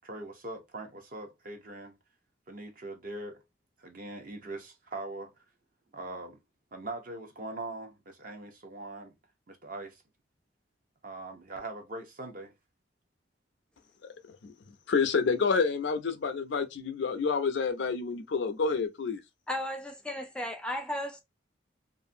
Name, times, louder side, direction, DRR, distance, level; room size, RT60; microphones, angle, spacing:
voice 1, 0.0-1.9 2.5-3.4 3.8-5.3 5.9-6.4 6.7-9.1 9.5-10.0 11.0-12.5, right 2 dB, 45° right, 0.7 m, -41 dB
voice 2, 14.9-19.2, left 5 dB, 65° left, 0.4 m, -28 dB
voice 3, 19.5-21.2, left 1 dB, 5° left, 0.4 m, -35 dB
2.5 x 2.5 x 2.5 m
head